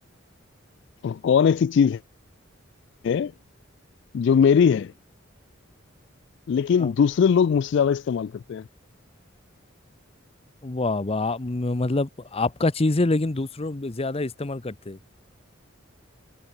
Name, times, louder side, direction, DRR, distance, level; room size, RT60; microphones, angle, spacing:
voice 1, 1.0-2.0 3.0-3.3 4.1-4.9 6.5-8.6, left 7 dB, 65° left, 0.3 m, -20 dB
voice 2, 10.6-15.0, left 2 dB, 30° left, 0.8 m, -26 dB
head